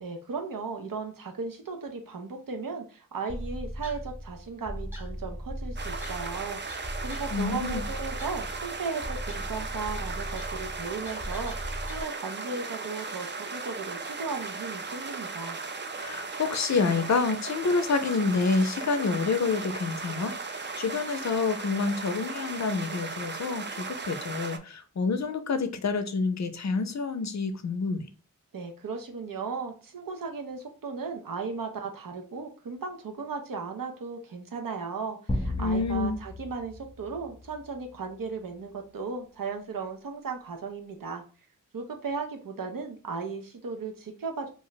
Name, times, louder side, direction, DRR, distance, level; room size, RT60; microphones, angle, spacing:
voice 1, 0.0-15.6 28.5-41.2 41.7-44.5, right 4 dB, 80° right, 0.6 m, -36 dB
sound 1, 3.3-12.0, equal, 5° right, 0.9 m, -38 dB
sound 2, 5.8-24.6, right 4 dB, 35° right, 0.4 m, -37 dB
voice 2, 7.3-7.8 16.0-28.0 35.6-36.2, left 4 dB, 55° left, 0.5 m, -28 dB
sound 3, 35.3-37.8, left 1 dB, 20° left, 0.7 m, -34 dB
2.5 x 2.1 x 3.9 m
wide cardioid pair, 65°, 33 cm